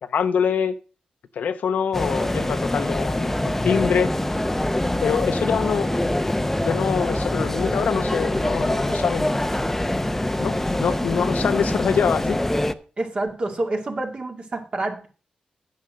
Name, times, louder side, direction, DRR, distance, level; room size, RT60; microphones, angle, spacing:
voice 1, 0.0-0.7 1.3-4.1 5.0-5.9 6.6-9.5 10.4-12.4, left 7 dB, 85° left, 0.7 m, -24 dB
sound 1, 1.9-12.7, left 1 dB, 10° left, 0.7 m, -24 dB
voice 2, 13.0-15.1, right 2 dB, 45° right, 2.2 m, -28 dB
9.5 x 6.5 x 6.4 m
cardioid pair, 80°, 3 cm